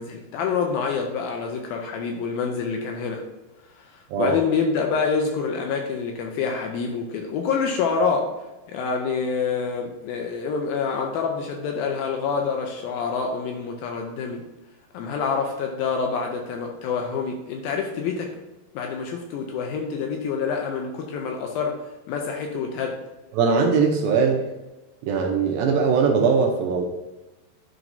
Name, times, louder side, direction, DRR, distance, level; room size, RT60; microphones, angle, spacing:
voice 1, 0.0-3.2 3.9-8.3 8.7-14.4 14.9-18.3 18.8-21.8 22.1-23.0, left 5 dB, 80° left, 2 dB, 2.3 m, -27 dB
voice 2, 23.3-24.5 25.0-26.8, right 5 dB, 80° right, 1 dB, 2.3 m, -20 dB
11.0 x 4.6 x 2.7 m, 1.0 s
omnidirectional pair, 4.6 m